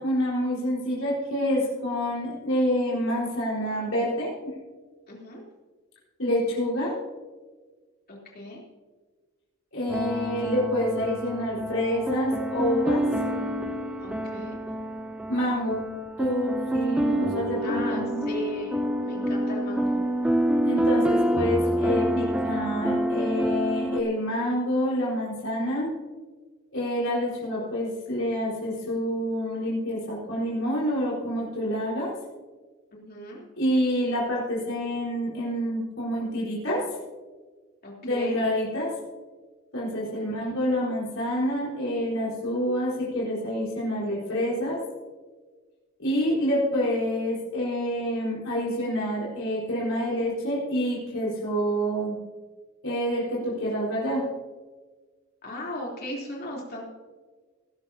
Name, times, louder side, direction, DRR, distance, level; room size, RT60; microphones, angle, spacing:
voice 1, 0.0-4.3 6.2-6.9 9.7-13.0 15.3-15.9 16.2-18.3 20.6-25.9 26.7-32.1 33.6-36.8 38.0-38.9 39.7-44.8 46.0-52.2 52.8-54.3, equal, 80° left, -6 dB, 4.4 m, -27 dB
voice 2, 5.1-5.4 8.1-8.6 14.0-14.6 17.6-20.0 32.9-33.4 37.8-38.4 40.1-40.2 55.4-56.8, left 1 dB, 45° left, -3 dB, 3.4 m, -37 dB
sound 1, 9.9-24.0, equal, 5° right, 0.6 m, -27 dB
20.0 x 11.5 x 2.8 m, 1.4 s
head